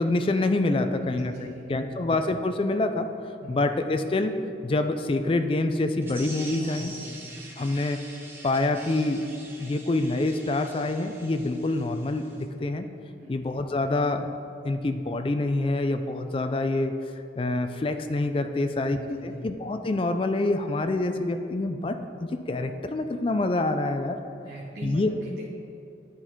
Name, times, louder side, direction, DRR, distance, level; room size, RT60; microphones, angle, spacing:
voice 1, 0.0-3.1 3.5-4.4 4.6-6.9 7.6-8.0 8.4-9.2 9.6-12.9 13.3-14.3 14.6-16.9 17.4-24.2 24.8-25.1, left 2 dB, 30° left, 7 dB, 0.3 m, -26 dB
voice 2, 0.9-2.0 3.4-3.6 6.5-7.3 13.2-13.3 18.5-19.5 24.4-25.5, right 1 dB, 60° right, -5 dB, 0.9 m, -41 dB
sound 1, 6.0-12.4, right 2 dB, 10° right, 0.9 m, -44 dB
11.0 x 4.1 x 4.5 m, 2.6 s
head